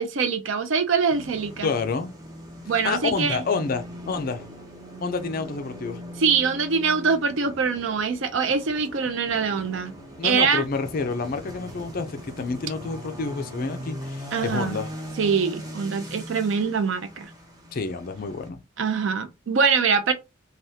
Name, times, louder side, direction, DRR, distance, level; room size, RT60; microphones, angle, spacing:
voice 1, 0.0-1.7 2.7-3.4 6.2-9.9 10.2-10.6 14.3-14.8 15.2-17.3 18.8-20.1, right 5 dB, 65° right, 0.5 m, -23 dB
sound 1, 1.1-18.5, equal, 20° right, 0.7 m, -40 dB
voice 2, 1.6-2.2 2.8-4.4 5.0-6.0 10.2-14.9 17.7-18.6, left 4 dB, 45° left, 0.4 m, -29 dB
3.4 x 2.3 x 2.7 m
head